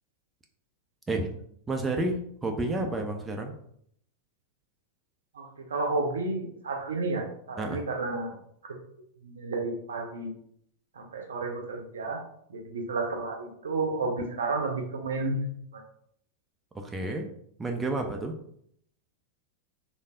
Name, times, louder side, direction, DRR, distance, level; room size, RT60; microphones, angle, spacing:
voice 1, 1.7-3.5 7.6-7.8 16.7-17.3 17.6-18.3, right 2 dB, 15° right, 3 dB, 0.4 m, -30 dB
voice 2, 5.3-8.4 8.6-8.7 9.2-10.3 11.0-12.2 12.5-15.8, right 3 dB, 65° right, 3 dB, 0.5 m, -31 dB
3.3 x 2.4 x 2.3 m, 0.69 s
figure-of-eight pair, 90°, 0 cm